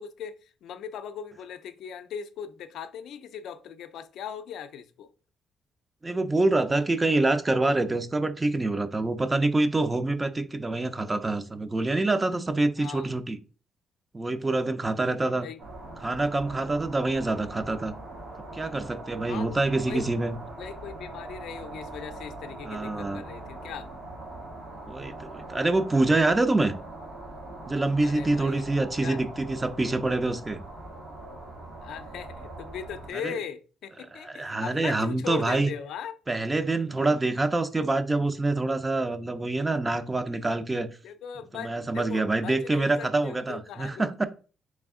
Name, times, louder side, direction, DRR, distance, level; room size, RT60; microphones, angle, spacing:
voice 1, 0.0-5.1 12.8-13.1 15.4-15.6 19.3-20.1 20.6-23.9 28.0-28.7 29.0-29.2 31.8-36.1 41.0-44.1, left 8 dB, 80° left, 0.4 m, -39 dB
voice 2, 6.0-13.4 14.1-15.5 16.0-17.9 18.5-20.4 22.6-23.2 24.9-26.8 27.7-30.6 33.2-33.4 34.2-35.7 36.3-40.9 41.5-44.3, right 2 dB, 20° right, 0.4 m, -26 dB
sound 1, 15.6-33.1, right 2 dB, 70° right, 1.3 m, -42 dB
3.4 x 3.2 x 3.5 m
cardioid pair, 90°, 0 cm